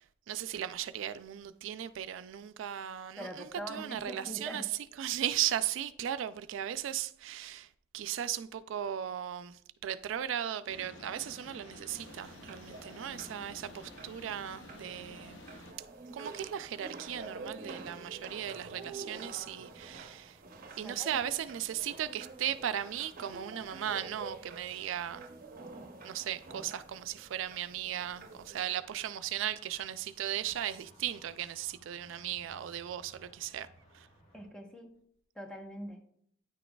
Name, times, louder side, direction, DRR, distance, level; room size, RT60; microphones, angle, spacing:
voice 1, 0.0-4.7 5.0-15.4 16.1-20.4 20.8-25.3 26.0-33.7 33.9-34.1, right 10 dB, 80° right, 0.3 m, -37 dB
voice 2, 3.2-4.7 20.8-21.3 34.3-34.9 35.3-36.0, equal, 5° left, 0.9 m, -43 dB
sound 1, 10.7-15.7, left 2 dB, 70° left, 0.8 m, -51 dB
sound 2, 11.9-28.7, right 3 dB, 50° right, 0.7 m, -49 dB
sound 3, 19.1-34.5, equal, 40° left, 1.3 m, -64 dB
9.4 x 6.2 x 2.3 m
head